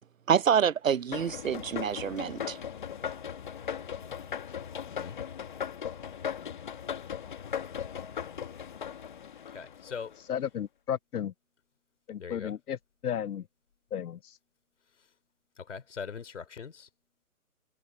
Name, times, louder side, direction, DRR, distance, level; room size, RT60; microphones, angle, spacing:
voice 1, 0.3-2.6, right 8 dB, 60° right, 0.7 m, -27 dB
sound 1, 1.1-10.2, left 8 dB, 35° left, 2.0 m, -38 dB
voice 2, 4.9-5.2 9.5-10.2 12.2-12.6 15.6-16.9, left 6 dB, 50° left, 3.2 m, -41 dB
voice 3, 10.3-11.3 12.1-12.8 13.0-13.4 13.9-14.4, left 9 dB, 85° left, 0.7 m, -33 dB
hypercardioid pair, 170°, 44 cm